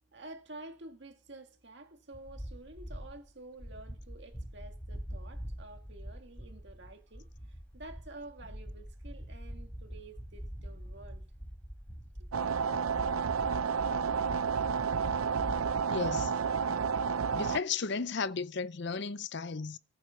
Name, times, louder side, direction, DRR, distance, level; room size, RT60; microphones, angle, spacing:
voice 1, 0.1-7.3 7.7-11.2 12.2-12.8, right 2 dB, 55° right, 2.1 m, -50 dB
sound 1, 2.1-3.3 3.6-15.8, equal, 10° left, 3.9 m, -44 dB
sound 2, 12.3-17.6, right 6 dB, 90° right, 0.6 m, -30 dB
voice 2, 15.9-16.3 17.3-19.8, left 5 dB, 55° left, 0.6 m, -34 dB
19.0 x 9.0 x 5.7 m
head